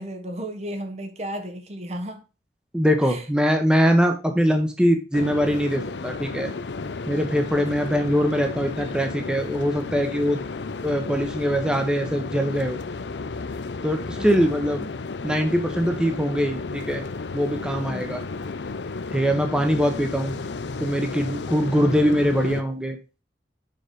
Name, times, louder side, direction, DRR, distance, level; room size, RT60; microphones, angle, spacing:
voice 1, 0.0-2.2 3.0-3.2 14.2-14.5 17.8-18.1, right 1 dB, 40° right, 0.9 m, -34 dB
voice 2, 2.7-6.5 7.1-10.4 10.8-12.8 13.8-14.9 15.2-17.0 17.3-18.2 19.1-20.4 20.8-23.0, equal, 5° right, 0.9 m, -22 dB
sound 1, 5.1-22.6, left 4 dB, 85° left, 0.6 m, -33 dB
6.7 x 5.0 x 5.3 m
head